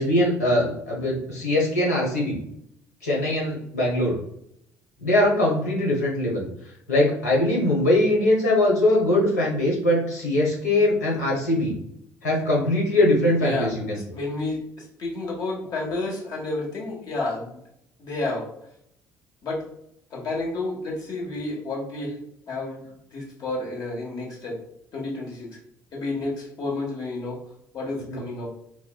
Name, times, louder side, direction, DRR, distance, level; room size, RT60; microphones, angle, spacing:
voice 1, 0.0-2.4 3.0-4.1 5.0-6.4 6.9-11.7 12.2-14.0 28.1-28.2, left 1 dB, 85° left, -3 dB, 1.0 m, -21 dB
voice 2, 14.1-14.6 15.0-17.6 18.0-18.5 19.4-19.6 20.1-22.2 22.5-22.8 23.1-24.6 24.9-25.5 25.9-27.4 27.7-28.5, left 2 dB, 50° left, -3 dB, 1.4 m, -30 dB
4.6 x 2.1 x 2.3 m, 0.74 s
hypercardioid pair, 55°, 8 cm